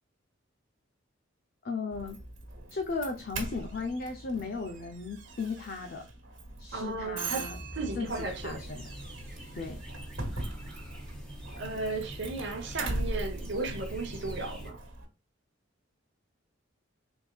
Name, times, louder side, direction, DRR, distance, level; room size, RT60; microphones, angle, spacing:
voice 1, 1.6-2.2 2.7-6.0 6.6-7.6 8.0-8.9 9.5-9.8, left 4 dB, 50° left, 0.5 m, -36 dB
Doorbell, 1.9-15.0, right 2 dB, 75° right, 1.4 m, -40 dB
voice 2, 6.7-7.5 7.7-8.6 10.3-10.9 11.5-14.8, right 3 dB, 60° right, 0.9 m, -35 dB
sound 1, 8.0-14.7, equal, 5° left, 1.5 m, -44 dB
4.4 x 3.6 x 2.3 m
head